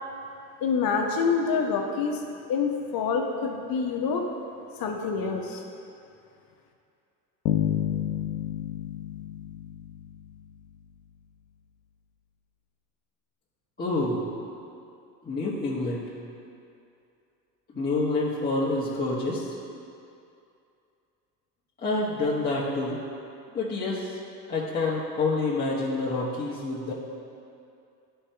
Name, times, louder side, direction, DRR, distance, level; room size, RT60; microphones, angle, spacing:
voice 1, 0.6-2.2 2.5-4.3 4.8-5.6, left 5 dB, 45° left, 2 dB, 1.1 m, -26 dB
Bass guitar, 7.5-10.5, left 11 dB, 80° left, 0.7 m, -30 dB
voice 2, 13.8-14.2 15.2-16.1 17.7-19.5 21.8-23.0 23.5-24.2 24.5-26.9, left 3 dB, 20° left, -8 dB, 1.2 m, -27 dB
11.0 x 4.5 x 3.4 m, 2.6 s
hypercardioid pair, 85°, 48 cm